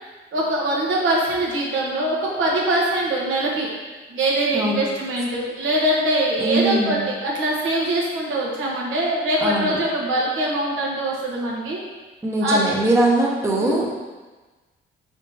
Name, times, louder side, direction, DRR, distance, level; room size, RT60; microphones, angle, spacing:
voice 1, 0.0-3.7 4.1-11.8 12.4-12.7 13.6-13.8, right 1 dB, 80° right, -4 dB, 1.0 m, -23 dB
voice 2, 4.5-4.9 6.4-7.1 9.4-9.8 12.2-14.0, right 1 dB, 15° right, -3 dB, 0.7 m, -21 dB
3.8 x 3.6 x 2.7 m, 1.3 s
cardioid pair, 90°, 20 cm